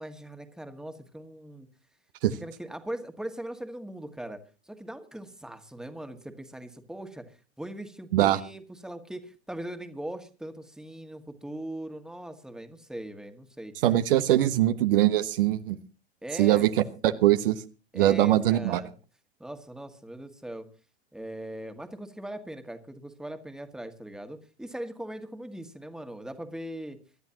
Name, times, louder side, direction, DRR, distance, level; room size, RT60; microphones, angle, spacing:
voice 1, 0.0-1.7 2.4-4.4 4.7-13.7 16.2-16.7 17.9-18.9 19.4-20.7 21.1-27.0, right 1 dB, ahead, 7 dB, 1.9 m, -40 dB
voice 2, 13.8-15.8 16.4-16.7 17.0-17.6 17.9-18.8, right 14 dB, 55° right, 10 dB, 1.2 m, -22 dB
25.5 x 12.5 x 2.9 m, 0.34 s
figure-of-eight pair, 95°, 33 cm